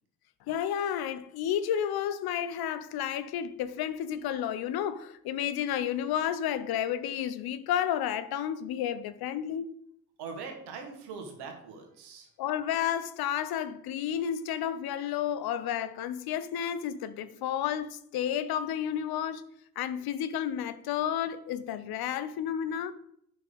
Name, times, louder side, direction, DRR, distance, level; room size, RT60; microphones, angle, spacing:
voice 1, 0.5-9.7 12.4-19.4 19.8-22.9, left 9 dB, 65° left, 0.8 m, -31 dB
voice 2, 10.2-12.3, right 5 dB, 70° right, 2.1 m, -42 dB
8.5 x 5.8 x 5.1 m
hypercardioid pair, 45°, 40 cm